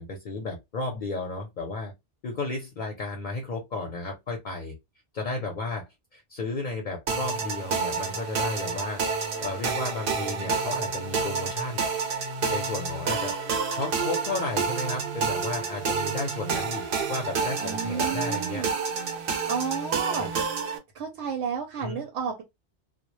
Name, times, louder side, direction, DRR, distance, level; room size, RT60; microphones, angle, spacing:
voice 1, 0.0-1.9 2.2-4.7 5.1-9.0 9.4-11.9 12.5-13.4 13.7-18.6 20.0-20.3 21.8-22.0, left 3 dB, 55° left, 0.6 m, -33 dB
sound 1, 7.1-20.8, right 5 dB, 65° right, 0.7 m, -29 dB
voice 2, 17.6-18.7 19.5-20.3 20.9-22.4, right 6 dB, 90° right, 0.9 m, -31 dB
2.1 x 2.0 x 2.9 m
omnidirectional pair, 1.1 m